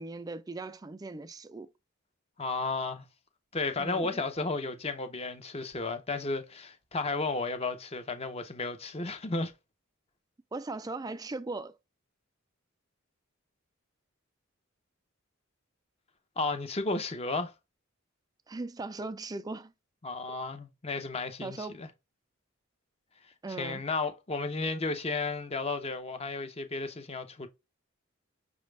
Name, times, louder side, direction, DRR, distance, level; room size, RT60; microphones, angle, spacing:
voice 1, 0.0-1.7 3.8-4.2 10.5-11.8 18.5-19.7 20.3-20.4 21.4-21.9 23.4-23.8, right 3 dB, 20° right, 0.3 m, -39 dB
voice 2, 2.4-3.0 3.5-9.5 16.4-17.5 20.0-21.9 23.6-27.5, left 3 dB, 30° left, 0.7 m, -33 dB
5.9 x 2.4 x 3.2 m
head